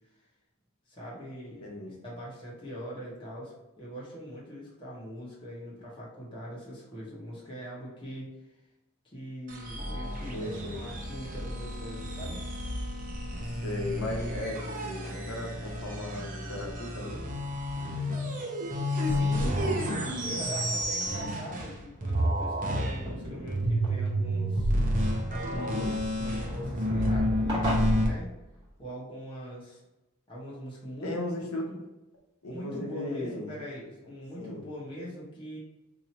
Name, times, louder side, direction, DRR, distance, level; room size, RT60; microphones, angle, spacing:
voice 1, 0.9-8.3 9.0-12.4 19.0-24.7 25.2-28.4 28.8-29.8 30.3-31.8 32.5-35.6, equal, 25° left, -7 dB, 1.0 m, -42 dB
voice 2, 1.6-2.0 10.3-10.8 13.6-17.2 31.0-31.7 32.4-33.5 34.4-34.6, left 1 dB, 75° left, 0 dB, 1.0 m, -36 dB
sound 1, 9.5-21.8 22.0-28.1, equal, 40° right, 0.7 m, -30 dB
sound 2, 20.2-28.9, right 1 dB, 20° right, 1.0 m, -42 dB
2.9 x 2.7 x 4.1 m, 0.99 s
head